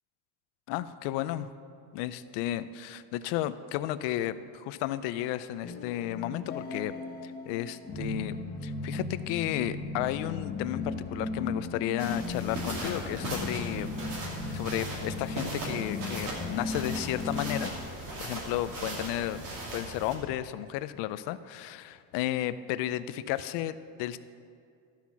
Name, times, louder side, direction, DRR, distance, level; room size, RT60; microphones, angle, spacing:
voice 1, 0.7-1.5 1.9-6.9 7.2-8.4 8.6-13.9 14.5-19.4 19.7-24.2, left 13 dB, 80° left, 14 dB, 0.6 m, -33 dB
sound 1, 5.6-17.7, left 3 dB, 20° left, 0.9 m, -36 dB
sound 2, 12.0-20.1, right 1 dB, 50° right, 2.5 m, -38 dB
13.5 x 5.8 x 6.0 m, 2.3 s
cardioid pair, 170°, 41 cm